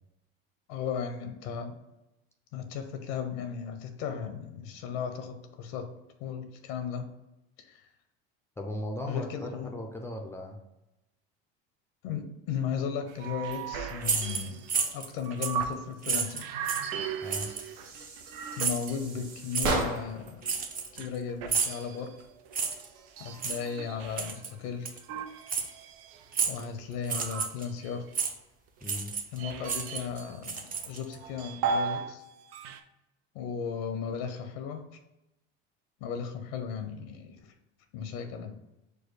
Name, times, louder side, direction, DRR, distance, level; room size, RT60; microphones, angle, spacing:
voice 1, 0.7-1.7 2.5-5.9 6.2-7.1 7.6-7.9 9.1-9.7 12.0-14.6 14.9-16.5 18.6-20.5 20.9-22.1 23.2-24.9 26.5-28.0 29.3-32.2 33.3-34.8 36.0-37.5 37.9-38.6, left 7 dB, 80° left, 7 dB, 0.7 m, -36 dB
voice 2, 8.6-10.6 17.2-17.5 28.8-29.1, left 1 dB, 10° left, 2 dB, 0.4 m, -37 dB
sound 1, 13.1-15.9 16.1-19.2 19.7-24.3 25.0-28.1 28.8-30.4 30.7-32.2 32.4-32.8, right 6 dB, 85° right, 0.5 m, -37 dB
sound 2, 14.0-15.1 15.4-15.6 16.0-16.9 17.3-17.7 18.6-18.9 19.5-19.7 20.4-21.2 21.5-21.8 22.5-22.9 23.4-23.6 24.2-24.5 24.9-25.0 25.5-25.7 26.3-26.6 27.0-27.6 28.1-28.3 28.8-29.4 29.6-31.1, right 5 dB, 30° right, 0.6 m, -31 dB
sound 3, 17.2-20.3, right 3 dB, 70° right, 1.2 m, -35 dB
4.6 x 2.2 x 4.6 m, 0.93 s
supercardioid pair, 115°, 29 cm